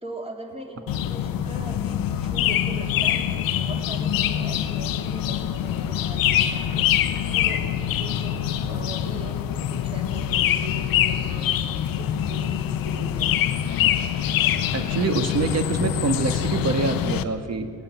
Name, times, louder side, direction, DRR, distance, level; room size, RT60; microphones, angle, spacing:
voice 1, 0.0-6.9 7.3-11.6 11.9-13.3, right 2 dB, 15° right, 1 dB, 3.2 m, -40 dB
sound 1, 0.9-17.2, left 10 dB, 85° left, 0.7 m, -24 dB
voice 2, 14.7-17.7, right 3 dB, 50° right, 7 dB, 1.7 m, -25 dB
17.5 x 8.9 x 9.1 m, 2.1 s
cardioid pair, 65°, 33 cm